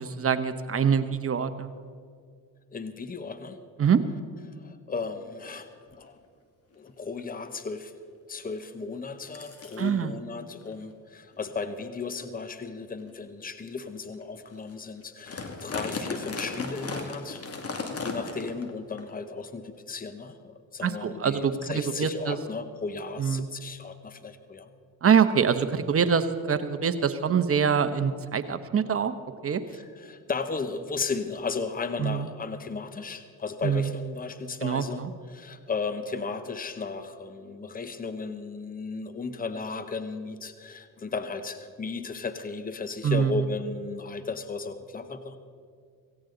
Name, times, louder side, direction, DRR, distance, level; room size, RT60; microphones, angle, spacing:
voice 1, 0.0-1.7 3.8-4.0 9.8-10.1 20.8-22.4 23.2-23.5 25.0-29.1 29.4-29.6 32.0-32.3 33.6-33.9 34.6-35.1 43.0-43.4, right 7 dB, 35° right, 10 dB, 1.0 m, -25 dB
voice 2, 2.7-3.6 4.5-6.2 6.7-7.9 8.3-17.4 18.0-24.7 29.7-45.4, left 4 dB, 20° left, 10 dB, 1.1 m, -35 dB
sound 1, 5.4-5.5 5.9-6.2 6.7-6.8 7.2-7.5 8.6-8.7 9.3-9.8 10.6-10.7 11.3-11.5 12.1-12.2 12.9-13.1 13.7-13.8 14.2-14.3 14.5-14.7 15.0-18.7 19.0-19.1 19.9-20.0, left 3 dB, 35° left, 2.4 m, -36 dB
17.0 x 16.5 x 4.0 m, 2.2 s
supercardioid pair, 80°, 39 cm